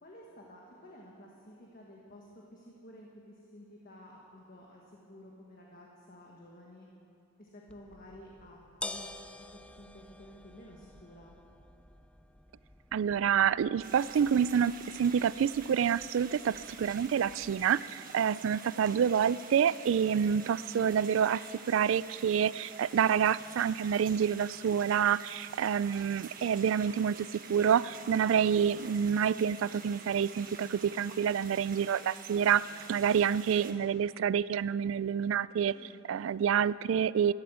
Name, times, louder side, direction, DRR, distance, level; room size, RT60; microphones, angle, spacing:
voice 1, 0.0-6.9 7.4-9.1 9.4-11.3 18.6-19.0 35.7-36.0, left 1 dB, 45° left, -2 dB, 1.5 m, -52 dB
sound 1, 7.7-17.7, left 2 dB, 5° left, 0.4 m, -49 dB
voice 2, 12.9-35.8 36.1-37.3, right 8 dB, 70° right, 19 dB, 0.3 m, -28 dB
sound 2, 13.8-33.7, right 5 dB, 45° right, 1.3 m, -48 dB
13.5 x 11.5 x 8.1 m, 2.8 s
head